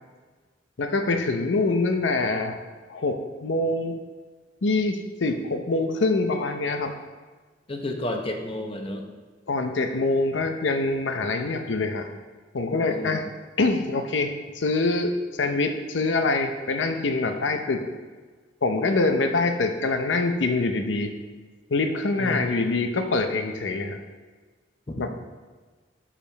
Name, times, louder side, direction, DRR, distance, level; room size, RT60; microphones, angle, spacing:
voice 1, 0.8-2.6 2.9-4.0 4.6-6.9 9.5-12.1 12.5-13.3 13.6-17.9 18.6-21.1 21.7-24.0 25.0-25.1, left 3 dB, 85° left, 6 dB, 0.6 m, -25 dB
voice 2, 7.7-9.1 12.9-13.2 22.2-22.4 24.9-25.0, left 1 dB, 30° left, 3 dB, 0.8 m, -31 dB
5.1 x 4.9 x 6.0 m, 1.4 s
head